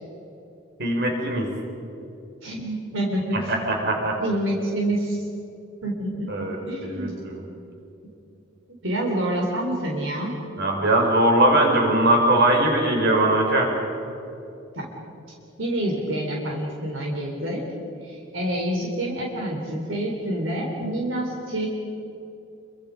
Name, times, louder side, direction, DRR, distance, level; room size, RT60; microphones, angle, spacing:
voice 1, 0.8-1.5 3.3-4.2 6.3-7.4 10.6-13.7, right 1 dB, 55° right, 1 dB, 4.5 m, -21 dB
voice 2, 2.4-3.5 4.2-5.2 5.8-6.3 6.6-7.3 8.8-10.4 14.8-14.9 15.6-17.7 18.0-21.7, right 1 dB, 75° right, -1 dB, 3.8 m, -27 dB
27.5 x 24.5 x 5.3 m, 2.8 s
head